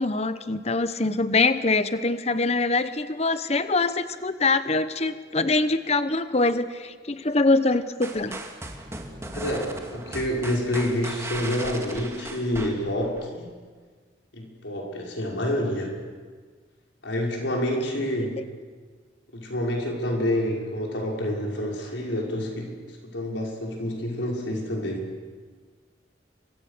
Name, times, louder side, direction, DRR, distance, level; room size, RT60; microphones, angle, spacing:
voice 1, 0.0-8.4 18.2-18.3, left 3 dB, 35° left, 12 dB, 1.0 m, -24 dB
sound 1, 8.0-13.3, right 2 dB, 15° right, 2.3 m, -37 dB
voice 2, 9.3-13.5 14.3-15.9 17.0-18.4 19.3-22.7 23.0-25.1, left 1 dB, 90° left, -1 dB, 5.9 m, -28 dB
30.0 x 24.5 x 6.8 m, 1.5 s
head